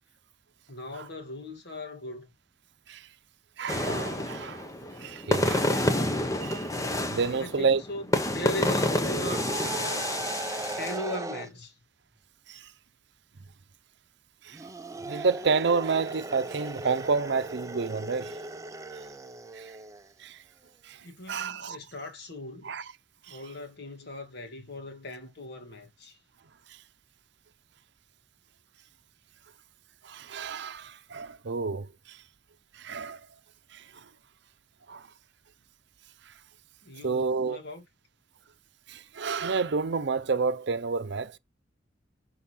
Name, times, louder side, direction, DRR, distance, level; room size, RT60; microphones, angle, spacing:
voice 1, 0.7-2.3 7.3-10.3 10.8-11.8 21.0-22.8 23.3-26.2 36.8-37.9, left 1 dB, 60° left, 2.0 m, -39 dB
voice 2, 3.6-4.7 5.0-6.7 7.1-7.8 12.5-12.7 14.4-14.6 15.0-18.4 19.5-19.8 20.2-20.4 20.8-21.0 21.3-21.8 22.6-22.8 23.3-23.4 30.0-32.2 32.8-33.2 33.7-33.8 34.9-35.1 37.0-37.6 38.9-41.4, right 4 dB, 65° right, 0.7 m, -30 dB
sound 1, 3.7-11.0, left 1 dB, 20° left, 1.0 m, -29 dB
sound 2, 9.3-11.5 14.5-20.1, right 2 dB, 15° right, 0.6 m, -38 dB
6.4 x 4.3 x 5.6 m
head